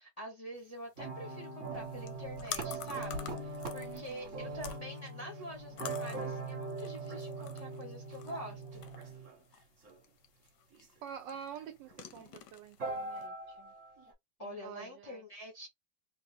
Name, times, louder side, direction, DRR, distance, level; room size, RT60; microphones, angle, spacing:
voice 1, 0.0-8.9 14.4-15.7, equal, 30° left, 0.6 m, -46 dB
sound 1, 0.6-13.3, left 10 dB, 70° left, 1.0 m, -50 dB
sound 2, 1.0-9.4 9.8-9.9 10.8-10.9 11.6-11.7 11.9-12.2 12.8-14.1, right 3 dB, 45° right, 1.3 m, -41 dB
voice 2, 3.7-4.4 11.0-13.7 14.4-15.2, right 8 dB, 75° right, 1.2 m, -48 dB
3.4 x 2.0 x 3.2 m
omnidirectional pair, 2.2 m